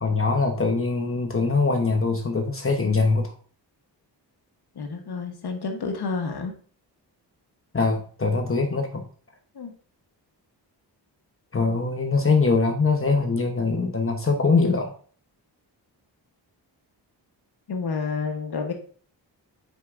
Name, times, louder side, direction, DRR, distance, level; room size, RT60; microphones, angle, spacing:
voice 1, 0.0-3.3 7.7-9.0 11.5-14.9, left 4 dB, 30° left, 3 dB, 1.0 m, -22 dB
voice 2, 4.7-6.5 9.5-9.7 17.7-18.7, left 4 dB, 65° left, 3 dB, 1.3 m, -29 dB
9.2 x 4.6 x 2.6 m, 0.43 s
cardioid pair, 95°, 43 cm